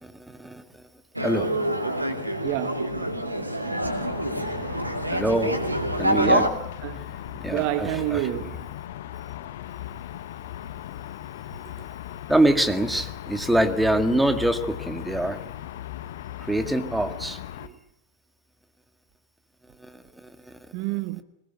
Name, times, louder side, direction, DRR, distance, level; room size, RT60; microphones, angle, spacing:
voice 1, 0.0-0.6 1.2-1.5 5.1-5.6 6.0-6.5 7.4-8.3 12.3-15.4 16.4-17.4 19.8-20.6, right 1 dB, 5° right, 1.9 m, -25 dB
sound 1, 1.2-6.5, right 1 dB, 85° right, 2.6 m, -26 dB
voice 2, 2.4-3.0 6.8-7.0 7.5-8.7 17.6-17.7 20.7-21.2, right 15 dB, 45° right, 1.2 m, -29 dB
sound 2, 3.8-17.7, left 12 dB, 55° left, 1.2 m, -38 dB
21.5 x 19.5 x 9.3 m
figure-of-eight pair, 90°, 0 cm